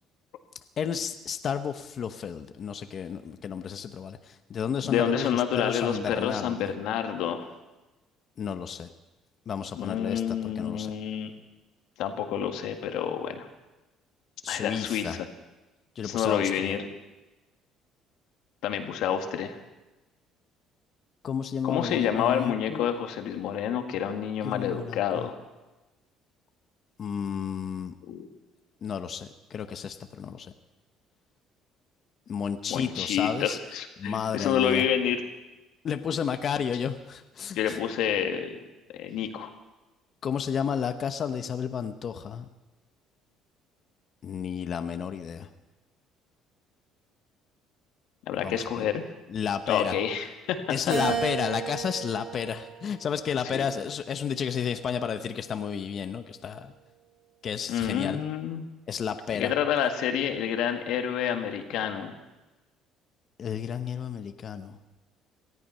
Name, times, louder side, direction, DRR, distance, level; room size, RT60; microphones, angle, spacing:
voice 1, 0.8-6.7 8.4-8.9 9.5-10.9 14.4-15.2 16.0-16.8 21.2-22.9 24.4-25.3 27.0-27.9 28.8-30.5 32.3-33.6 34.0-34.9 35.8-37.8 40.2-42.5 44.2-45.5 48.4-48.9 49.3-50.0 50.7-56.7 57.4-58.2 58.9-59.5 63.4-64.8, left 7 dB, 45° left, 9 dB, 0.9 m, -32 dB
voice 2, 4.8-7.5 9.7-11.3 12.0-13.5 14.5-15.2 16.0-16.8 18.6-19.6 21.6-25.4 28.1-28.2 32.7-35.2 37.6-38.6 39.0-39.5 48.3-49.0 49.7-50.6 53.5-53.7 57.7-58.7 59.3-62.1, left 9 dB, 80° left, 6 dB, 1.7 m, -28 dB
Keyboard (musical), 50.9-53.4 54.0-55.2, right 7 dB, 65° right, 7.0 m, -35 dB
19.0 x 13.5 x 5.6 m, 1.1 s
cardioid pair, 105°, 0 cm